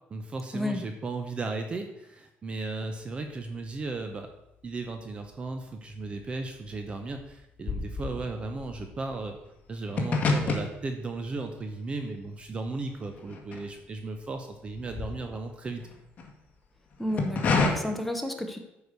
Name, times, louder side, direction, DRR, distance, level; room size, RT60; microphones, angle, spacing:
voice 1, 0.1-4.3 4.6-9.4 9.7-15.8, right 3 dB, 25° right, 6 dB, 0.8 m, -35 dB
sound 1, 4.9-5.6 5.9-14.2 14.5-16.3 16.9-17.7, left 3 dB, 35° left, 1.6 m, -31 dB
voice 2, 17.0-18.6, left 1 dB, 5° left, 4 dB, 1.1 m, -31 dB
9.4 x 4.9 x 6.7 m, 0.87 s
cardioid pair, 145°, 4 cm